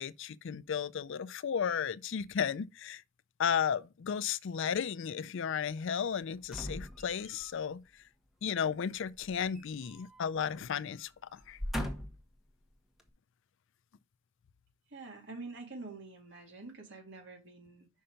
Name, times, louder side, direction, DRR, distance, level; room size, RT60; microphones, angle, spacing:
voice 1, 0.0-3.0 3.4-7.8 8.4-11.6, left 7 dB, 65° left, 0.4 m, -34 dB
sound 1, 6.4-7.6 9.1-10.3 10.6-10.8 11.4-12.3 13.0-13.1, equal, ahead, 1.2 m, -40 dB
voice 2, 14.9-17.9, right 3 dB, 60° right, 2.4 m, -46 dB
5.7 x 5.5 x 5.1 m
head